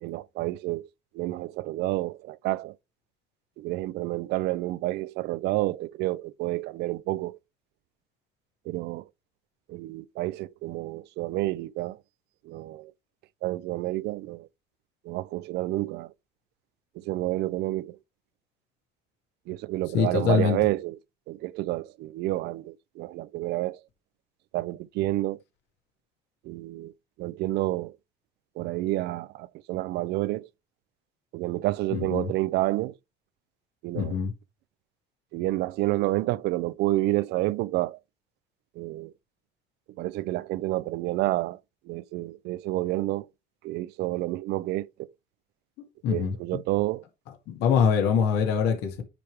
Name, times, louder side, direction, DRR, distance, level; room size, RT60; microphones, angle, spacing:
voice 1, 0.0-0.9 1.1-2.7 3.6-7.4 8.7-9.1 9.7-12.0 12.4-12.9 13.4-14.5 15.0-16.1 17.0-18.0 19.5-21.0 21.3-23.8 24.5-25.4 26.4-26.9 27.2-28.0 28.6-30.5 31.3-33.0 33.8-34.2 35.3-38.0 38.8-39.1 40.0-41.6 41.9-43.3 43.6-45.1 46.1-47.0, right 17 dB, 80° right, 0.4 m, -29 dB
voice 2, 19.9-20.6 31.9-32.3 33.9-34.3 46.0-46.3 47.5-49.0, left 7 dB, 90° left, 2.0 m, -24 dB
9.9 x 3.5 x 4.6 m
cardioid pair, 110°, 17 cm